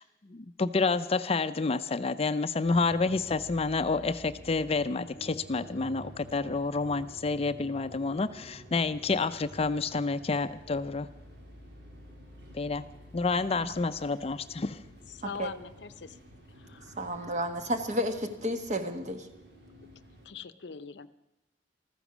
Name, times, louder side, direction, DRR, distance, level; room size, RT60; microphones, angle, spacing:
voice 1, 0.0-11.1 12.5-12.8 13.1-14.8, left 3 dB, 35° left, 12 dB, 0.5 m, -29 dB
sound 1, 2.6-20.3, equal, 70° right, 3.6 m, -50 dB
voice 2, 15.1-16.2 16.6-17.0 20.2-21.1, left 6 dB, 75° left, 14 dB, 0.6 m, -42 dB
voice 3, 17.0-19.3, equal, 45° right, 7 dB, 1.5 m, -32 dB
14.5 x 14.0 x 6.1 m, 1.0 s
head